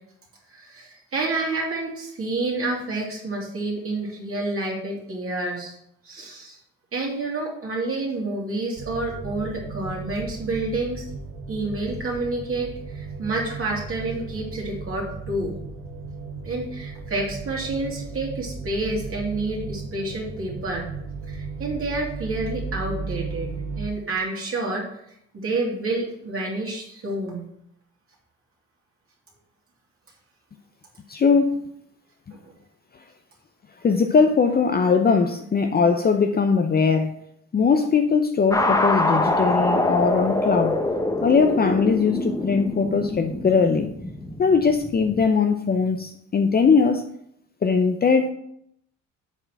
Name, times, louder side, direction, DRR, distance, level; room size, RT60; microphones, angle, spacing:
voice 1, 0.5-5.8 6.0-6.6 6.9-11.1 11.5-15.6 16.4-20.9 21.3-24.8 25.3-27.4 32.3-32.5, right 2 dB, 45° right, -3 dB, 2.9 m, -29 dB
sound 1, 8.8-23.9, right 4 dB, 80° right, 1.3 m, -35 dB
voice 2, 31.1-31.7 33.8-37.1 37.5-40.8 41.2-43.9 44.4-47.0 47.6-48.3, left 5 dB, 30° left, 6 dB, 0.6 m, -20 dB
sound 2, 38.5-45.3, left 1 dB, 10° left, 1.0 m, -25 dB
8.0 x 4.4 x 5.9 m, 0.74 s
cardioid pair, 90°, 30 cm